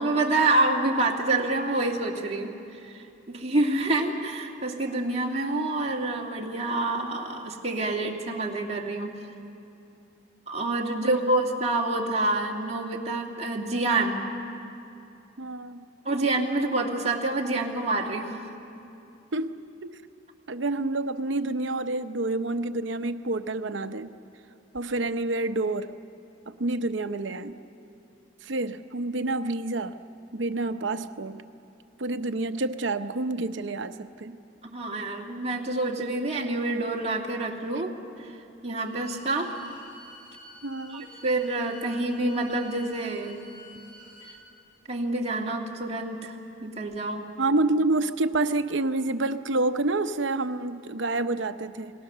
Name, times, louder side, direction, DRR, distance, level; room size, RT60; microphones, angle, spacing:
voice 1, 0.0-9.1 10.5-14.2 16.0-18.5 34.6-37.9 38.2-38.4 38.6-39.5 40.9-43.4 44.9-46.3 46.6-47.3, right 2 dB, 35° right, -2 dB, 2.3 m, -27 dB
voice 2, 15.4-15.8 19.3-19.5 19.8-20.0 20.5-24.1 24.7-25.9 26.5-27.6 28.4-29.9 30.3-31.4 32.0-34.4 40.6-41.1 47.4-51.9, right 2 dB, 75° right, 9 dB, 0.8 m, -28 dB
Bowed string instrument, 38.7-44.4, equal, 55° left, 7.3 m, -49 dB
28.0 x 20.5 x 6.8 m, 2.7 s
head